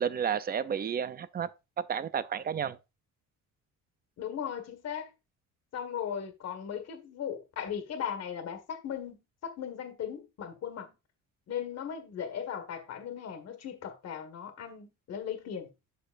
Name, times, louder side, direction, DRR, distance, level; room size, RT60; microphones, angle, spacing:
voice 1, 0.0-2.8, right 8 dB, 30° right, 0.6 m, -32 dB
voice 2, 4.2-5.1 5.7-11.0 11.5-15.7, left 8 dB, 55° left, 1.8 m, -37 dB
10.0 x 6.6 x 2.6 m
cardioid pair, 135°, 32 cm